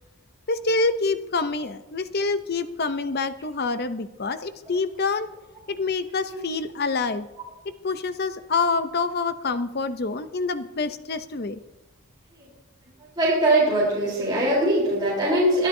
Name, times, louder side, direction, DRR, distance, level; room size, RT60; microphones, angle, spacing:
voice 1, 0.5-5.3 5.7-7.3 7.8-11.6, left 3 dB, 45° left, 11 dB, 0.6 m, -26 dB
voice 2, 13.2-15.7, right 1 dB, 20° right, -8 dB, 3.9 m, -21 dB
23.0 x 11.0 x 2.7 m, 1.0 s
head